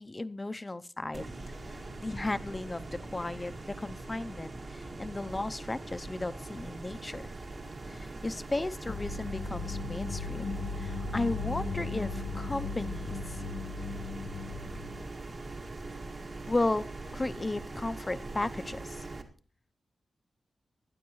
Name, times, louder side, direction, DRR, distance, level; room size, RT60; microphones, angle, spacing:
voice 1, 0.0-7.2 7.9-13.4 16.5-19.0, left 2 dB, 20° left, 13 dB, 0.6 m, -35 dB
sound 1, 1.1-19.2, right 2 dB, 45° right, 2.0 m, -42 dB
sound 2, 8.9-15.0, left 3 dB, 55° left, 0.9 m, -37 dB
19.5 x 12.5 x 3.1 m, 0.38 s
wide cardioid pair, 130°, 0 cm